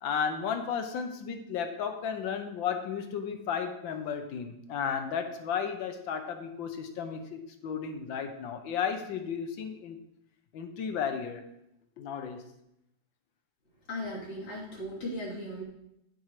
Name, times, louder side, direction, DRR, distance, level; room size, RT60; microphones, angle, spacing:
voice 1, 0.0-10.0 10.5-11.4 12.0-12.5, left 7 dB, 65° left, 6 dB, 1.5 m, -34 dB
voice 2, 13.9-15.6, left 1 dB, 90° left, -7 dB, 4.2 m, -37 dB
15.0 x 5.4 x 3.2 m, 0.82 s
omnidirectional pair, 2.4 m